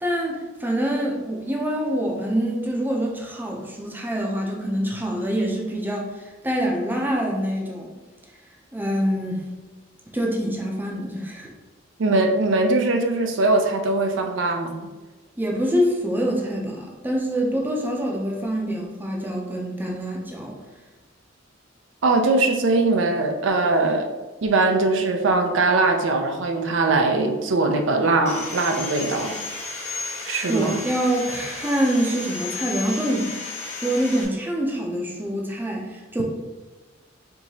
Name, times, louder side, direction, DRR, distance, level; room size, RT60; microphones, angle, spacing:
voice 1, 0.0-7.9 8.7-9.4 10.1-11.5 15.4-20.5 30.5-36.2, equal, 10° right, -1 dB, 0.6 m, -25 dB
voice 2, 12.0-14.7 22.0-24.1 24.4-29.3 30.3-30.8, right 3 dB, 75° right, 4 dB, 0.5 m, -21 dB
Sawing, 28.3-34.3, left 3 dB, 35° left, 0.9 m, -33 dB
4.5 x 2.8 x 2.8 m, 1.2 s
head